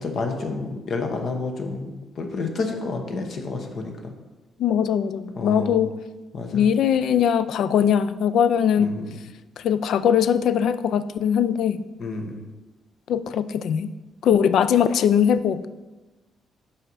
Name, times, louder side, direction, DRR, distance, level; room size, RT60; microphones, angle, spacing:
voice 1, 0.0-3.9 5.4-5.8 6.3-6.6 8.8-9.0 12.0-12.4, left 3 dB, 55° left, 4 dB, 1.0 m, -29 dB
voice 2, 4.6-5.9 6.5-8.9 9.6-11.8 13.1-13.9 14.2-15.7, left 8 dB, 75° left, 14 dB, 0.3 m, -21 dB
5.4 x 4.9 x 5.5 m, 1.2 s
cardioid pair, 90°, 0 cm